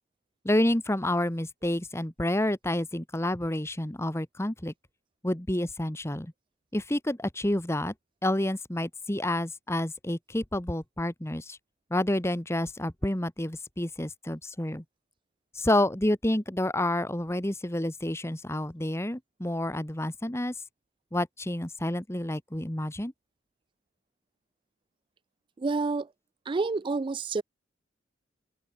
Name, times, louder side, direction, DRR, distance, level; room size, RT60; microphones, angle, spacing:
voice 1, 0.4-4.7 5.2-6.3 6.7-7.9 8.2-11.6 11.9-14.8 15.5-20.5 21.1-23.1, left 1 dB, 15° left, 1.3 m, -29 dB
voice 2, 25.6-26.1 26.5-27.4, right 3 dB, 25° right, 0.3 m, -28 dB
head